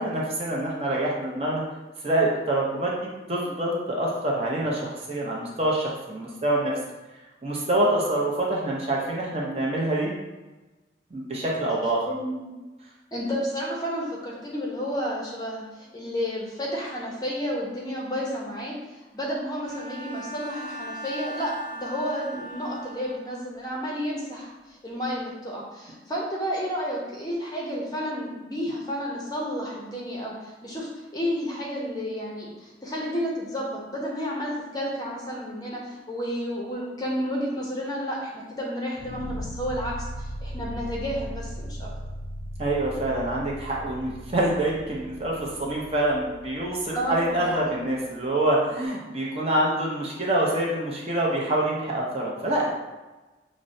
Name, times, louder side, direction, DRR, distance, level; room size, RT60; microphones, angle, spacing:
voice 1, 0.0-1.6 2.0-6.7 7.4-10.1 11.1-12.1 42.6-52.7, right 1 dB, 35° right, -4 dB, 0.6 m, -26 dB
voice 2, 12.1-12.5 13.1-18.7 19.1-41.9 46.9-47.4, equal, 20° left, -3 dB, 0.6 m, -31 dB
Bowed string instrument, 19.7-23.4, right 1 dB, 80° right, 0.9 m, -38 dB
sound 1, 39.0-48.1, equal, 80° left, 0.4 m, -38 dB
5.9 x 2.1 x 2.6 m, 1.2 s
head